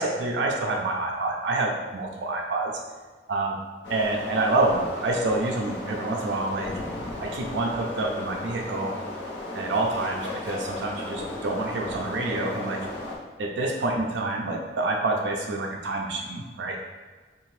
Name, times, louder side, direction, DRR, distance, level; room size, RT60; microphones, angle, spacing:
voice 1, 0.0-2.7 3.3-3.6 3.9-6.7 7.2-8.9 9.5-12.9 13.4-16.8, right 2 dB, 85° right, 0 dB, 0.4 m, -27 dB
sound 1, 3.8-13.2, left 2 dB, 85° left, 0.7 m, -35 dB
2.8 x 2.5 x 3.1 m, 1.4 s
head